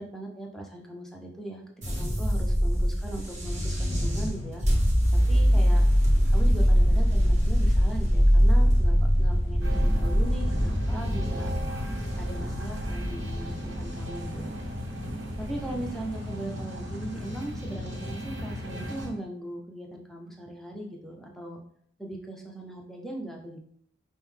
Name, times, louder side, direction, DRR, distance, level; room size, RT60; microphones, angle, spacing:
voice 1, 0.0-1.6 2.0-4.6 5.3-5.8 6.3-11.5 12.2-14.7 15.4-21.6 22.0-23.6, right 1 dB, ahead, -1 dB, 0.5 m, -39 dB
sound 1, 1.8-16.0, equal, 35° right, 1.1 m, -23 dB
sound 2, 9.6-19.1, equal, 70° right, 0.9 m, -36 dB
5.2 x 2.1 x 3.2 m, 0.64 s
head